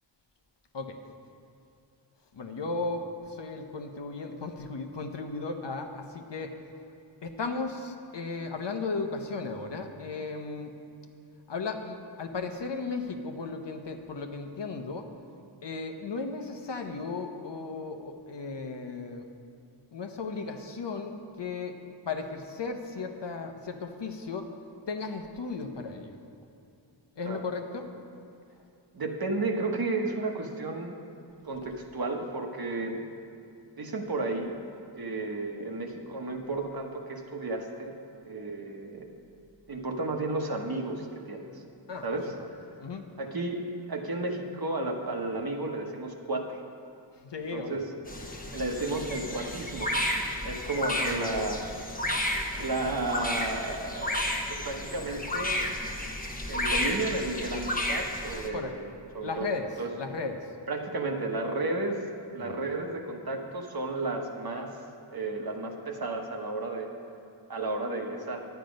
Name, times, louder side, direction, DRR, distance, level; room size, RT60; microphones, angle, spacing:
voice 1, 2.3-6.5 7.2-10.8 11.5-15.1 15.6-19.2 19.9-21.8 22.1-24.5 24.9-26.2 27.2-27.9 41.9-42.5 42.8-43.1 47.2-47.9 50.7-51.5 58.5-58.8 59.2-60.4 62.4-62.6, left 4 dB, 70° left, 5 dB, 0.9 m, -35 dB
voice 2, 28.9-31.0 31.4-33.0 33.8-34.5 35.0-37.9 38.2-39.1 39.7-41.6 42.0-42.3 43.2-43.6 43.9-46.6 47.5-47.8 48.5-49.9 50.4-51.6 52.6-55.6 56.5-59.5 59.8-59.9 60.7-62.0 62.3-64.7 65.1-66.9 67.5-68.5, right 2 dB, 55° right, 3 dB, 1.2 m, -33 dB
sound 1, 48.1-58.5, left 1 dB, 20° left, 1.1 m, -32 dB
11.0 x 9.2 x 5.2 m, 2.6 s
wide cardioid pair, 100°, 45 cm